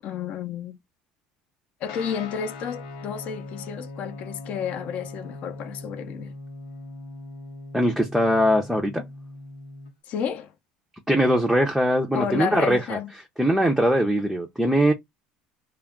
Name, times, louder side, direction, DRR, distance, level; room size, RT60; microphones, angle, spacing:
voice 1, 0.0-0.7 1.8-6.3 10.1-10.5 12.1-13.1, left 8 dB, 55° left, 0.6 m, -31 dB
Guitar, 1.9-9.9, left 2 dB, 90° left, 0.8 m, -40 dB
voice 2, 7.7-9.0 11.1-13.0 13.4-14.9, equal, ahead, 0.5 m, -21 dB
2.3 x 2.2 x 3.4 m
supercardioid pair, 115°, 3 cm